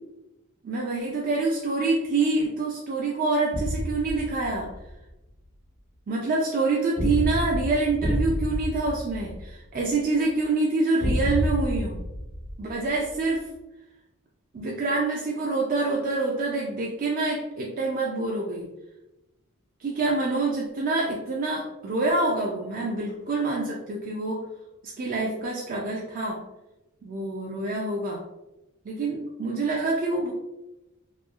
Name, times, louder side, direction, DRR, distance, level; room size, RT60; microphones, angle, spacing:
voice 1, 0.6-4.7 6.1-12.0 12.6-13.4 14.5-18.7 19.8-24.5 24.8-26.4 27.0-28.2 28.9-30.3, right 3 dB, 40° right, -2 dB, 0.3 m, -26 dB
sound 1, 3.5-4.9 7.0-9.9 11.0-13.2, equal, 65° right, 1.0 m, -29 dB
2.9 x 2.3 x 2.3 m, 0.97 s
head